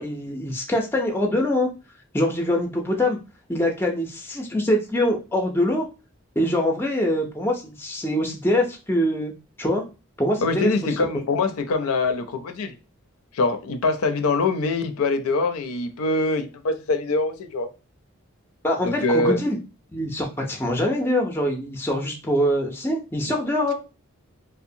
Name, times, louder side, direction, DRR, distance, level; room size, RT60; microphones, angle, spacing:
voice 1, 0.0-1.7 2.1-3.2 3.5-5.9 6.4-9.3 9.6-9.8 10.2-10.7 18.6-19.6 19.9-23.7, left 1 dB, 10° left, 0.4 m, -24 dB
voice 2, 10.4-12.7 13.3-17.7 18.8-19.4, left 3 dB, 85° left, 0.4 m, -24 dB
2.7 x 2.0 x 2.6 m
head